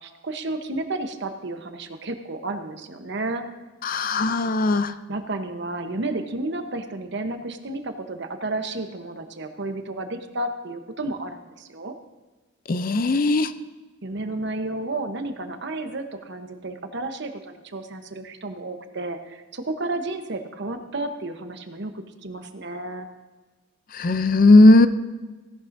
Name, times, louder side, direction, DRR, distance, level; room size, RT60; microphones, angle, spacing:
voice 1, 0.0-3.5 5.1-11.9 14.0-23.1, right 2 dB, 60° right, 7 dB, 1.0 m, -32 dB
voice 2, 3.8-4.9 12.7-13.5 23.9-24.9, left 2 dB, 45° left, 12 dB, 0.5 m, -17 dB
16.5 x 11.0 x 2.6 m, 1.3 s
head